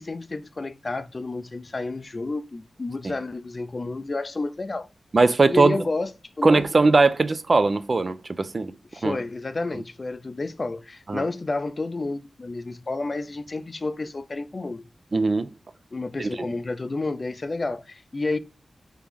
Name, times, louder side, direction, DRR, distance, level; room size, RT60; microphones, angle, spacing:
voice 1, 0.0-4.9 5.5-6.1 6.4-6.7 8.9-14.8 15.9-18.4, left 3 dB, 45° left, 0.4 m, -30 dB
voice 2, 5.1-5.8 6.4-8.7 9.0-9.2 11.1-11.2 15.1-15.5 16.2-16.3, right 3 dB, 45° right, 0.4 m, -20 dB
3.4 x 2.9 x 3.5 m
cardioid pair, 65°, 0 cm